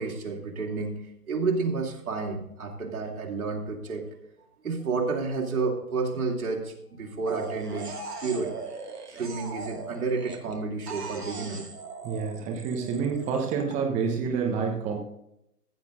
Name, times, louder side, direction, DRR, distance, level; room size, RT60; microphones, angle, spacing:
voice 1, 0.0-4.2 4.6-8.8 9.1-11.9, right 4 dB, 65° right, 0 dB, 3.2 m, -31 dB
sound 1, 7.3-10.5 10.9-13.7, right 4 dB, 85° right, 2.3 m, -39 dB
voice 2, 12.0-15.0, right 5 dB, 15° right, 0 dB, 1.2 m, -28 dB
15.5 x 7.4 x 3.8 m, 0.77 s
figure-of-eight pair, 135°, 46 cm